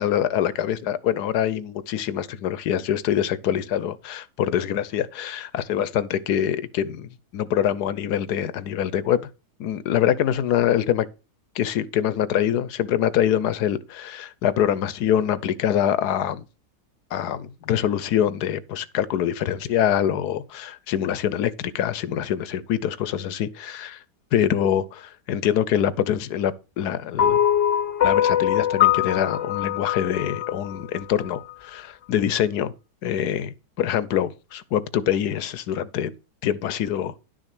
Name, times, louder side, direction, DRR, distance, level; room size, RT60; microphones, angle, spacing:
voice 1, 0.0-9.2 9.6-11.1 11.5-16.4 17.1-24.0 24.3-27.4 28.0-32.7 33.0-36.1 36.4-37.1, left 10 dB, 75° left, 1.2 m, -24 dB
sound 1, 27.2-31.5, left 11 dB, 45° left, 0.9 m, -22 dB
11.0 x 6.5 x 6.0 m
omnidirectional pair, 1.8 m